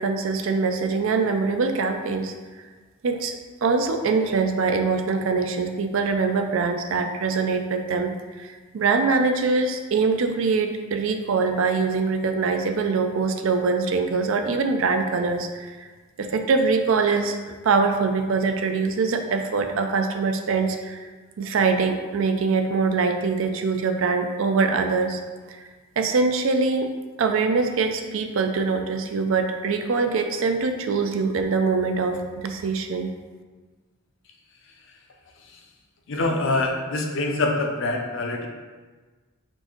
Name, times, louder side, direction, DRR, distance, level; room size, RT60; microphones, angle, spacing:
voice 1, 0.0-2.3 3.0-8.1 8.4-15.9 16.2-21.1 21.4-25.2 25.5-25.7 26.0-26.9 27.2-33.1, right 4 dB, 65° right, 6 dB, 0.4 m, -23 dB
voice 2, 36.1-38.5, left 2 dB, 60° left, 2 dB, 0.6 m, -25 dB
4.4 x 2.6 x 4.4 m, 1.4 s
head